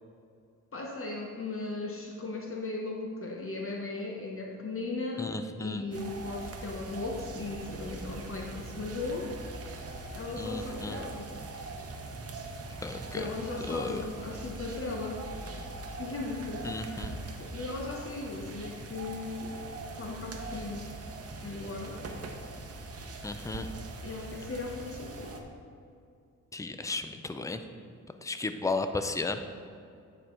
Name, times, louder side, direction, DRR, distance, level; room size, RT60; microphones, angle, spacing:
voice 1, 0.7-5.3 5.6-9.3 10.1-11.3 13.1-15.2 16.0-16.8 17.1-19.6 20.0-20.9 21.4-22.0 24.0-25.5, left 3 dB, 40° left, 0 dB, 0.8 m, -37 dB
voice 2, 5.2-5.8 10.4-11.0 12.8-13.3 13.6-14.0 16.6-17.1 23.2-23.7 26.5-27.6 28.2-29.4, left 3 dB, 10° left, 8 dB, 0.4 m, -34 dB
sound 1, 5.9-25.4, right 2 dB, 50° right, 0.8 m, -42 dB
9.1 x 4.5 x 3.8 m, 2.4 s
cardioid pair, 80°, 32 cm